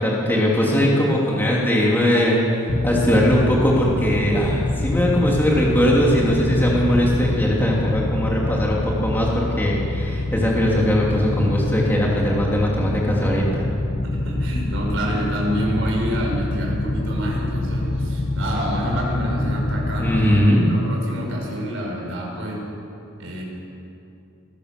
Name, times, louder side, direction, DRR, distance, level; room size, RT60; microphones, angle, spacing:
voice 1, 0.0-13.7 20.0-20.6, equal, 10° left, -4 dB, 3.0 m, -20 dB
sound 1, 2.7-20.5, left 2 dB, 35° left, 0.6 m, -25 dB
voice 2, 14.0-22.6 23.2-23.4, equal, 60° right, -2 dB, 6.1 m, -27 dB
sound 2, 15.2-20.5, left 3 dB, 50° left, 5.3 m, -41 dB
23.5 x 16.5 x 6.8 m, 2.7 s
head